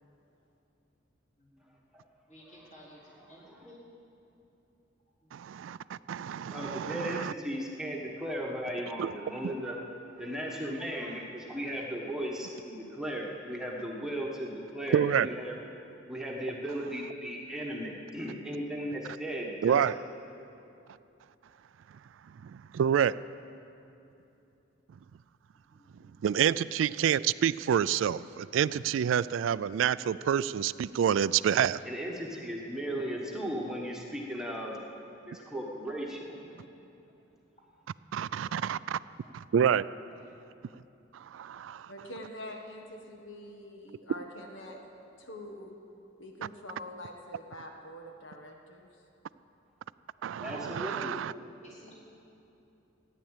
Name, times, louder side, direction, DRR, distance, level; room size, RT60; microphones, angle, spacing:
voice 1, 1.4-1.7 2.3-3.8 5.2-5.3 25.7-26.1 28.7-28.8 36.2-36.7 37.0-37.1 38.8-38.9 39.2-39.3 39.8-40.3 41.5-41.7 51.6-51.9, equal, 40° left, -6 dB, 4.4 m, -56 dB
voice 2, 5.3-7.3 9.0-9.1 9.4-9.5 14.9-15.3 19.6-20.0 22.4-23.1 26.2-31.8 38.1-39.0 39.3-39.9 41.3-41.9 50.2-51.3, right 8 dB, 75° right, 17 dB, 0.3 m, -28 dB
voice 3, 6.5-9.8 10.2-15.5 16.1-19.8 31.8-34.8 35.3-36.2 50.4-51.2, equal, 5° right, -2 dB, 1.4 m, -36 dB
voice 4, 41.9-44.8 45.2-45.8 46.2-48.9, left 1 dB, 80° left, 2 dB, 1.4 m, -45 dB
15.0 x 9.9 x 9.0 m, 2.8 s
head